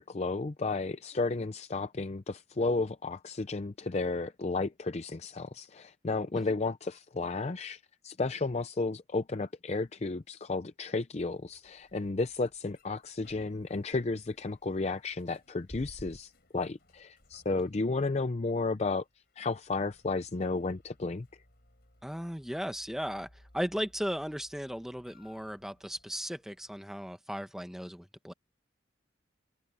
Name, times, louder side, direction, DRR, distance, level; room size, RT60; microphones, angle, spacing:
voice 1, 0.0-19.0 19.4-21.3, left 3 dB, 35° left, 0.5 m, -33 dB
sound 1, 11.3-26.8, left 1 dB, 55° left, 4.4 m, -59 dB
voice 2, 22.0-28.3, equal, ahead, 1.4 m, -36 dB
head